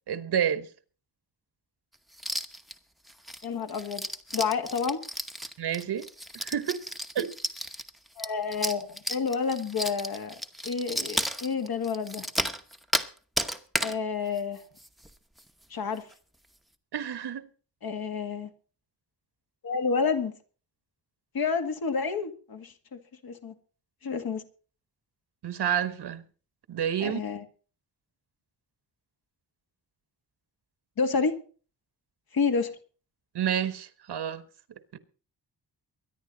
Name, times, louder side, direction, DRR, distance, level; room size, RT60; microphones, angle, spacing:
voice 1, 0.1-0.7 5.6-6.1 6.3-6.8 7.1-7.3 16.9-17.5 25.4-26.3 26.7-27.2 33.3-34.4 34.9-35.0, right 9 dB, 75° right, 1.4 m, -29 dB
sound 1, 2.1-2.7 3.1-13.1 13.4-14.0 14.4-14.5 14.8-15.1 15.4-15.5 16.0-16.1, equal, ahead, 0.9 m, -33 dB
voice 2, 3.4-4.1 4.3-5.0 8.2-12.3 13.8-14.6 15.7-16.1 17.8-18.5 19.6-20.3 21.3-23.5 24.0-24.4 27.0-27.4 31.0-31.4 32.3-32.7, left 5 dB, 60° left, 2.1 m, -29 dB
23.5 x 10.5 x 4.0 m
wide cardioid pair, 175°, 40 cm